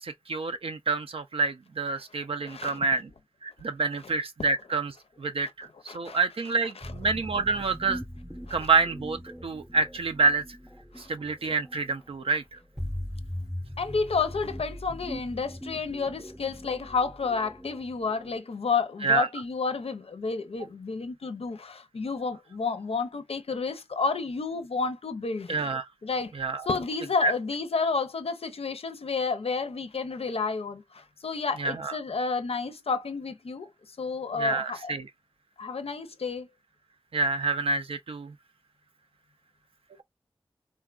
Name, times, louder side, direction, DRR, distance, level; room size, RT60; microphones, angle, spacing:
voice 1, 0.0-3.1 3.4-8.0 8.5-10.4 11.0-12.6 19.0-19.3 25.5-25.8 26.4-26.6 27.2-27.3 31.6-32.0 34.4-35.1 37.1-38.3, right 3 dB, 70° right, 0.4 m, -27 dB
voice 2, 2.5-2.8 5.9-6.2 6.8-6.9 8.5-8.7 11.0-11.1 13.8-25.5 26.0-26.3 26.7-33.7 34.0-34.9 35.6-36.5, left 4 dB, 80° left, 0.5 m, -30 dB
sound 1, 6.8-18.4, equal, 5° right, 0.6 m, -40 dB
3.6 x 2.2 x 2.3 m
wide cardioid pair, 50°, 10 cm